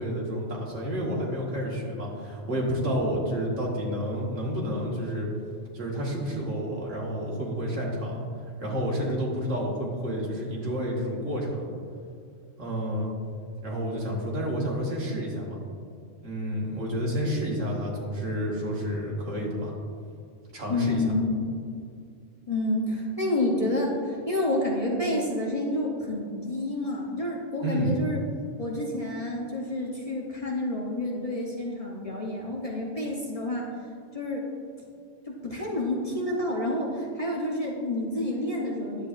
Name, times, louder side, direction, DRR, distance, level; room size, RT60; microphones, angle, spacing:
voice 1, 0.0-5.3 5.7-11.7 12.6-13.1 13.6-15.6 16.2-19.7 20.5-21.0 27.6-28.0, equal, 75° right, -3 dB, 1.9 m, -30 dB
voice 2, 20.7-21.6 22.5-28.2 28.6-33.7 34.1-34.5 35.3-39.1, left 1 dB, 30° left, -3 dB, 0.9 m, -29 dB
10.0 x 7.7 x 2.5 m, 2.4 s
omnidirectional pair, 1.3 m